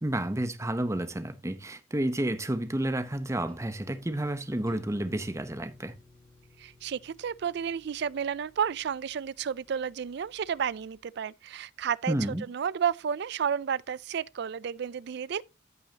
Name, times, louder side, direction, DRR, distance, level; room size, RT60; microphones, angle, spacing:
voice 1, 0.0-5.9 12.1-12.4, right 1 dB, 15° right, 0.8 m, -30 dB
sound 1, 2.9-11.0, left 2 dB, 5° left, 2.1 m, -57 dB
voice 2, 6.6-12.1 12.5-15.4, right 7 dB, 60° right, 0.4 m, -31 dB
14.0 x 5.5 x 2.8 m
head